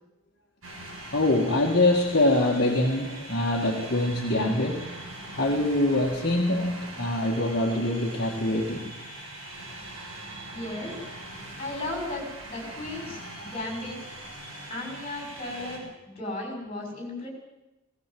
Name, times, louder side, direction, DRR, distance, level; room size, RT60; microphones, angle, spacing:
sound 1, 0.6-15.8, right 1 dB, 70° right, 6.6 m, -41 dB
voice 1, 1.1-4.9 5.3-8.9, left 1 dB, 45° left, 0 dB, 1.9 m, -24 dB
voice 2, 10.5-11.0 11.6-14.0 14.7-17.3, left 2 dB, 25° left, 1 dB, 6.6 m, -35 dB
19.0 x 18.5 x 7.7 m, 0.99 s
head